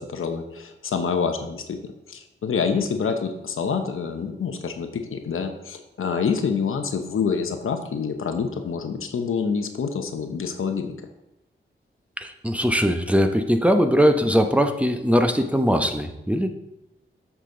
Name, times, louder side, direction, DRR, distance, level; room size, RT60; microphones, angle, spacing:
voice 1, 0.0-1.8 2.1-10.9, left 6 dB, 85° left, 6 dB, 0.9 m, -27 dB
voice 2, 12.2-16.5, equal, 5° right, 6 dB, 0.9 m, -20 dB
8.0 x 6.1 x 3.8 m, 0.92 s
cardioid pair, 55°, 21 cm